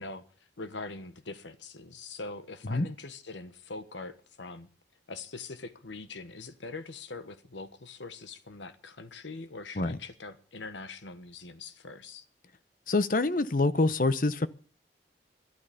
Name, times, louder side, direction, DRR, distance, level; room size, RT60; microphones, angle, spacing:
voice 1, 0.0-4.7 5.1-12.2, left 3 dB, 80° left, 1.3 m, -43 dB
voice 2, 12.9-14.5, left 2 dB, 45° left, 0.8 m, -26 dB
12.0 x 12.0 x 6.9 m
head